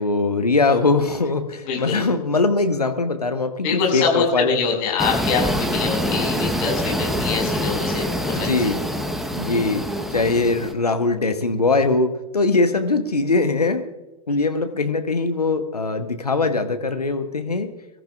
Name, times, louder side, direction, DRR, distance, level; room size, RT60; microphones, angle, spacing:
voice 1, 0.0-4.6 8.3-8.8 9.4-9.8 10.1-13.8 14.3-17.7, left 3 dB, 85° left, 8 dB, 1.1 m, -21 dB
voice 2, 1.6-2.0 3.6-8.7, left 5 dB, 40° left, 1 dB, 5.3 m, -24 dB
sound 1, 5.0-10.7, equal, ahead, 1.0 m, -25 dB
23.5 x 14.0 x 2.4 m, 1.1 s
figure-of-eight pair, 100°, 19 cm